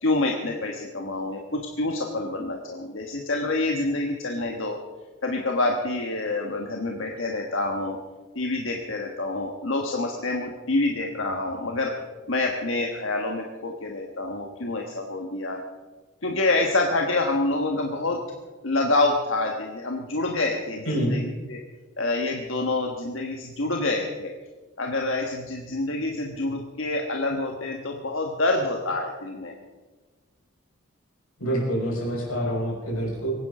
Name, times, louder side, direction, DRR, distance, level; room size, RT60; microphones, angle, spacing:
voice 1, 0.0-4.8 5.2-8.0 8.3-11.9 12.3-15.6 16.2-18.2 18.6-21.6 22.0-24.3 24.8-29.5, left 2 dB, 65° left, 1 dB, 1.5 m, -27 dB
voice 2, 20.8-21.2 31.4-33.3, equal, 90° left, -2 dB, 6.3 m, -26 dB
23.5 x 9.9 x 5.0 m, 1.3 s
head